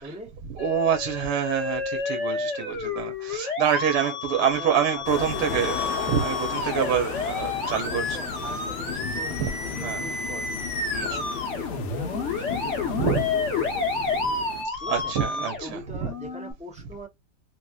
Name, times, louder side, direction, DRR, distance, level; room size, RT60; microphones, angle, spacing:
voice 1, 0.0-0.4 4.0-5.7 7.6-10.5 11.0-14.2 14.8-17.1, right 1 dB, 10° right, 0.5 m, -41 dB
Musical instrument, 0.6-16.5, left 4 dB, 50° left, 1.2 m, -30 dB
voice 2, 0.6-5.8 6.1-8.0 9.3-9.5 9.8-10.1 10.9-11.1 12.9-13.2 14.9-16.0, right 8 dB, 70° right, 1.2 m, -26 dB
sound 1, 5.1-14.7, left 7 dB, 75° left, 1.2 m, -34 dB
3.2 x 2.8 x 2.2 m
omnidirectional pair, 1.8 m